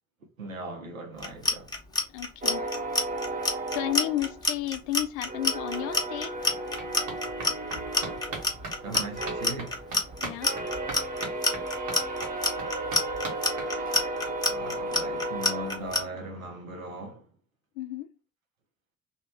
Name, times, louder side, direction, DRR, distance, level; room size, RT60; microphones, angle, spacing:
voice 1, 0.4-1.7 8.8-9.8 14.5-17.2, right 1 dB, 85° right, 0.7 m, -38 dB
Clock, 1.2-16.0, left 2 dB, 10° left, 0.8 m, -27 dB
voice 2, 2.1-2.6 3.7-6.4 10.2-10.5 17.8-18.1, left 14 dB, 60° left, 0.4 m, -32 dB
sound 1, 2.4-4.9 5.2-16.5, right 2 dB, 20° right, 0.9 m, -35 dB
sound 2, 5.5-5.6 5.8-14.3 14.6-14.7 15.0-15.1 15.3-15.4, right 3 dB, 60° right, 1.2 m, -41 dB
2.9 x 2.3 x 3.2 m
figure-of-eight pair, 50°, 40 cm